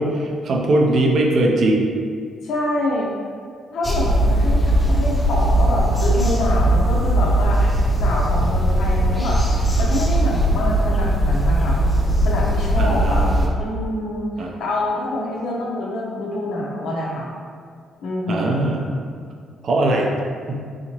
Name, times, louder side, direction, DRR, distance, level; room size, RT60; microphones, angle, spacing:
voice 1, 0.0-1.9 12.8-13.5 14.4-14.5 18.3-18.9 19.6-20.1 20.5-20.6, right 1 dB, 60° right, 0 dB, 0.6 m, -20 dB
voice 2, 2.4-3.1 3.7-7.6 8.0-9.4 9.8-11.8 12.2-13.2 13.6-17.3 18.0-18.7, left 1 dB, 75° left, -3 dB, 0.8 m, -26 dB
sound 1, 3.8-13.5, right 1 dB, 20° left, 0.6 m, -19 dB
4.0 x 2.8 x 3.0 m, 2.1 s
cardioid pair, 90°, 0 cm